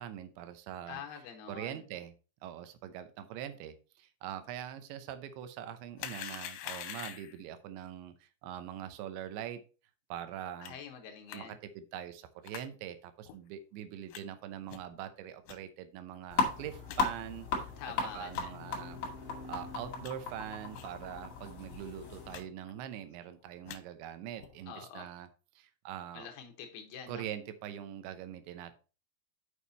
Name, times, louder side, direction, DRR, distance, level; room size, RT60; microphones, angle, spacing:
voice 1, 0.0-1.0 1.5-2.1 2.4-9.6 10.1-10.8 11.3-17.7 18.0-19.0 19.4-25.3 25.6-26.3 27.1-28.7, right 10 dB, 85° right, 10 dB, 3.1 m, -43 dB
voice 2, 0.9-1.8 10.6-11.6 17.8-18.6 24.7-25.1 26.1-27.2, left 8 dB, 70° left, 5 dB, 2.9 m, -46 dB
sound 1, 6.0-7.4 10.6-10.7 11.3-11.4 12.4-12.7 13.2-13.4 14.1-14.2 14.7-14.9 15.5-15.6 16.1-16.2 16.5-16.6 16.9-17.0 17.5-17.7 18.3-18.5 19.0-19.1 19.6-20.1 20.7-20.9 21.2-21.3 21.6-21.8 22.3-22.4 22.7-23.1 23.5-23.8 24.4-24.6, left 11 dB, 85° left, 3.2 m, -45 dB
sound 2, 16.3-22.4, left 5 dB, 50° left, 2.8 m, -37 dB
7.3 x 6.5 x 4.1 m, 0.34 s
omnidirectional pair, 5.2 m